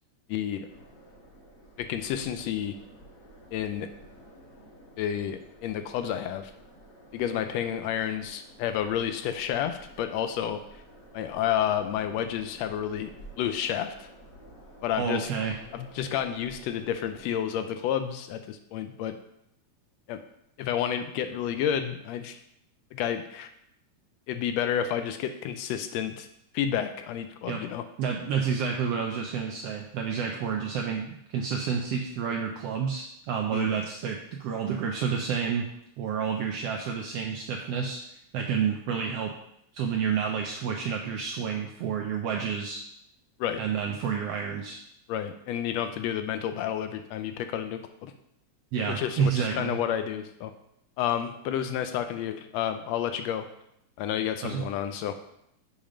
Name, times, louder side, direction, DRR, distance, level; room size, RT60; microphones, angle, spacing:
voice 1, 0.3-0.7 1.8-2.7 3.5-3.9 5.0-6.5 7.1-10.6 11.1-13.1 13.4-14.1 14.8-15.3 15.7-19.2 20.1-20.2 20.6-22.4 22.9-23.5 24.3-26.3 26.5-27.8 33.5-33.7 43.4-43.6 45.1-48.1 48.9-50.5 51.0-53.5 54.0-55.1, left 9 dB, 80° left, 8 dB, 1.5 m, -30 dB
sound 1, 0.7-17.2, right 1 dB, 45° left, 1.8 m, -51 dB
voice 2, 15.0-15.6 27.5-27.6 28.0-35.7 36.0-38.0 38.3-39.3 39.7-42.8 43.6-44.8 48.7-49.8 54.4-54.6, right 7 dB, 80° right, 2 dB, 1.4 m, -29 dB
7.3 x 5.1 x 5.0 m, 0.77 s
omnidirectional pair, 3.4 m